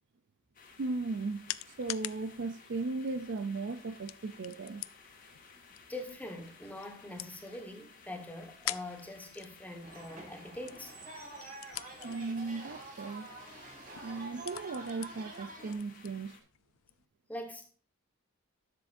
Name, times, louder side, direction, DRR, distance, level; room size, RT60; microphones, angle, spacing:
sound 1, 0.5-16.4, left 4 dB, 40° left, 1.9 m, -57 dB
sound 2, 0.7-17.1, left 15 dB, 80° left, 0.4 m, -47 dB
voice 1, 0.8-1.5 1.8-4.8 12.0-13.3 14.0-16.4, right 3 dB, 55° right, 0.4 m, -37 dB
voice 2, 5.9-10.9 17.3-17.7, left 1 dB, 5° left, 1.3 m, -43 dB
sound 3, 9.8-15.7, right 2 dB, 40° right, 2.5 m, -48 dB
11.0 x 7.4 x 2.6 m
head